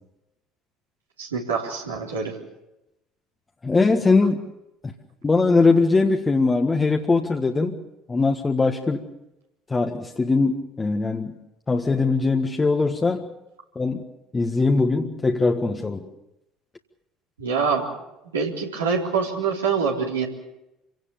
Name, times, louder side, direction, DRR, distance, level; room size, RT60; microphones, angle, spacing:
voice 1, 1.2-2.3 17.4-17.9 18.3-20.3, right 5 dB, 80° right, -2 dB, 3.7 m, -25 dB
voice 2, 3.6-4.4 4.8-4.9 5.2-7.8 8.1-9.0 9.7-11.4 11.7-13.3 13.8-14.0 14.3-16.1, left 3 dB, 20° left, 3 dB, 1.7 m, -21 dB
27.5 x 17.5 x 7.1 m, 0.92 s
figure-of-eight pair, 60°, 0 cm